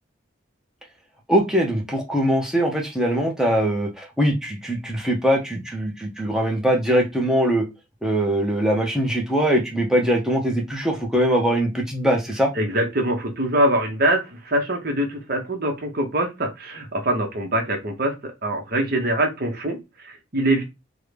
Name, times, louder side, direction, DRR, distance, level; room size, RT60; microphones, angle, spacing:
voice 1, 1.3-7.7 8.0-12.5, equal, 5° right, 0 dB, 0.7 m, -22 dB
voice 2, 12.6-20.6, right 1 dB, 50° right, 3 dB, 1.0 m, -24 dB
3.7 x 2.2 x 3.2 m, 0.23 s
head